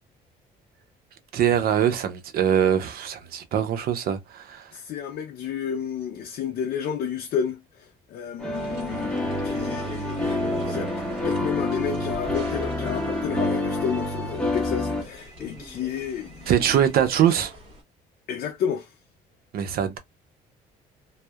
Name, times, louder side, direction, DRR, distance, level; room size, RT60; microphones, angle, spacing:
voice 1, 1.3-4.7 16.5-17.5 19.5-20.0, right 9 dB, 60° right, 0.6 m, -23 dB
voice 2, 4.7-16.5 18.3-18.9, left 8 dB, 60° left, 0.5 m, -31 dB
sound 1, 8.4-15.0, left 2 dB, 5° left, 0.8 m, -27 dB
sound 2, 8.5-17.8, equal, 35° right, 1.5 m, -43 dB
2.6 x 2.0 x 2.3 m
cardioid pair, 110°, 17 cm